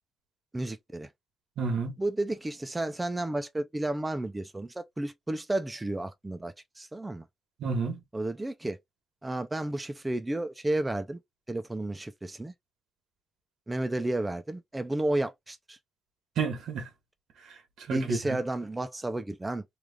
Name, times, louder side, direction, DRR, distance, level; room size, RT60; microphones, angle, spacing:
voice 1, 0.5-1.1 2.0-7.3 8.1-8.8 9.2-11.2 11.5-12.5 13.7-15.8 17.9-19.6, right 1 dB, 15° right, 0.4 m, -32 dB
voice 2, 1.6-1.9 7.6-8.0 16.4-16.9 17.4-18.4, right 4 dB, 85° right, 1.3 m, -31 dB
3.2 x 2.4 x 3.5 m
cardioid pair, 135°, 0 cm